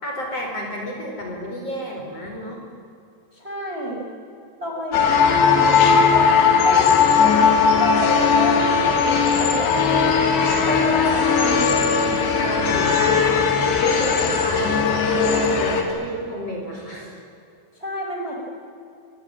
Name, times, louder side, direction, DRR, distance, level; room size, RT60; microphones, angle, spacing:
voice 1, 0.0-2.6 5.1-5.2 11.4-17.1, equal, 35° left, 0 dB, 5.5 m, -31 dB
voice 2, 3.3-4.0 4.6-7.5 7.8-10.1 10.7-11.8 17.8-18.3, equal, 15° right, 0 dB, 5.2 m, -29 dB
sound 1, 4.9-15.8, left 6 dB, 80° left, 5.0 m, -18 dB
27.0 x 23.0 x 8.9 m, 2.5 s
omnidirectional pair, 4.9 m